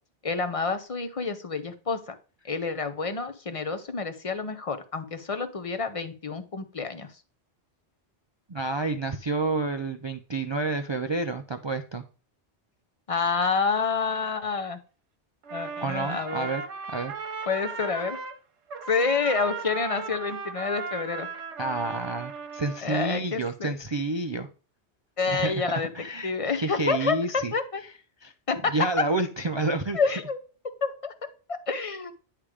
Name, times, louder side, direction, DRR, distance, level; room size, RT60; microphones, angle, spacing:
voice 1, 0.2-2.1 2.5-7.1 13.1-14.8 15.5-16.5 17.5-18.2 18.9-21.3 22.8-23.7 25.2-25.9 26.2-27.8 28.5-28.7 29.9-30.4 30.8-31.1 31.5-32.1, left 4 dB, 35° left, 10 dB, 0.7 m, -28 dB
voice 2, 8.5-12.0 15.8-16.6 16.9-17.1 21.6-24.5 25.3-27.5 28.2-28.3 28.6-30.0, right 2 dB, 45° right, 6 dB, 0.3 m, -29 dB
Trumpet, 15.4-18.4 18.7-22.8, right 5 dB, 75° right, 1.2 m, -36 dB
10.0 x 3.4 x 4.8 m, 0.37 s
omnidirectional pair, 1.2 m